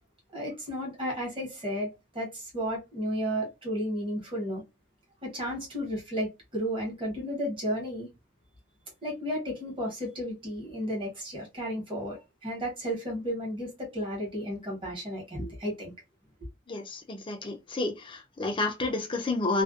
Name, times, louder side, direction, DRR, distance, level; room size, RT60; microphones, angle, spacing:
voice 1, 0.3-4.6 5.2-8.1 9.0-15.9, equal, 30° right, 1.2 m, -33 dB
voice 2, 16.7-19.6, left 2 dB, 30° left, 0.5 m, -30 dB
2.5 x 2.1 x 2.4 m
head